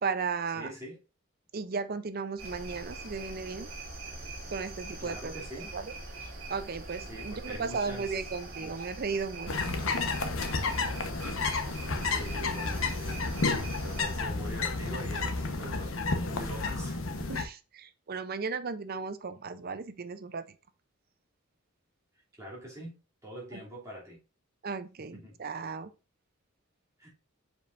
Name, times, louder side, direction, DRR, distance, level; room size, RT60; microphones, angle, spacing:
voice 1, 0.0-0.7 1.5-3.7 4.5-5.4 5.7-5.9 6.5-9.5 17.3-17.6 17.8-20.4 23.5-23.6 24.6-25.9, right 5 dB, 45° right, 0.6 m, -35 dB
voice 2, 0.5-1.0 5.0-5.7 7.1-8.1 8.6-8.8 12.0-13.2 13.8-17.4 22.4-24.2 25.1-25.4 27.0-27.1, right 1 dB, 15° right, 2.8 m, -44 dB
sound 1, 2.4-14.1, right 2 dB, 70° right, 2.1 m, -43 dB
sound 2, 9.5-17.4, left 3 dB, 75° left, 1.1 m, -31 dB
7.2 x 5.2 x 2.5 m
head